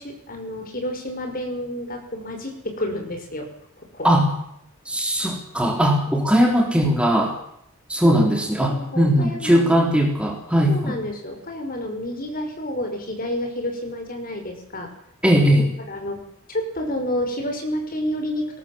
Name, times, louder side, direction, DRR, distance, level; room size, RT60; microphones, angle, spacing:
voice 1, 0.0-3.5 3.8-4.1 8.0-8.3 8.6-10.0 10.7-14.9 15.9-16.2 16.5-18.6, left 1 dB, 40° left, 4 dB, 5.6 m, -30 dB
voice 2, 4.9-7.3 7.9-11.0 15.2-15.7, equal, 5° right, 2 dB, 3.6 m, -19 dB
21.5 x 18.5 x 7.6 m, 0.74 s
head